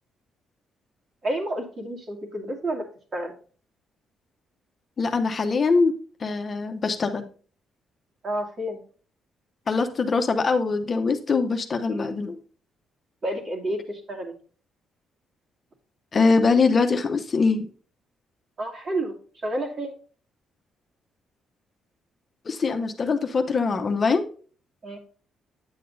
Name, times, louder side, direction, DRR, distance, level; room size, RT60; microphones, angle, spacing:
voice 1, 1.2-2.8 3.1-3.3 8.2-8.8 11.9-12.1 13.2-14.3 18.6-19.1 19.4-19.9 24.8-25.0, right 1 dB, 45° right, -1 dB, 2.4 m, -30 dB
voice 2, 5.0-5.9 6.2-7.3 9.7-12.4 16.1-17.7 22.5-24.2, left 4 dB, 40° left, 6 dB, 0.7 m, -23 dB
8.6 x 7.5 x 2.7 m, 0.42 s
cardioid pair, 90°, 0 cm